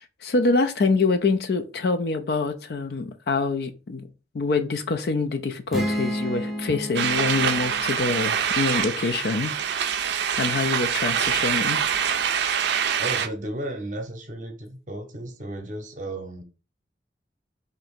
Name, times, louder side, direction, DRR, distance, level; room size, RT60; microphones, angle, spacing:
voice 1, 0.2-4.0 4.3-9.5 10.4-11.8, left 3 dB, 60° left, 0.4 m, -25 dB
sound 1, 5.7-9.4, equal, ahead, 0.7 m, -32 dB
sound 2, 7.0-13.3, right 8 dB, 70° right, 0.4 m, -25 dB
voice 2, 13.0-16.4, right 1 dB, 45° right, 0.7 m, -34 dB
2.9 x 2.6 x 4.2 m
head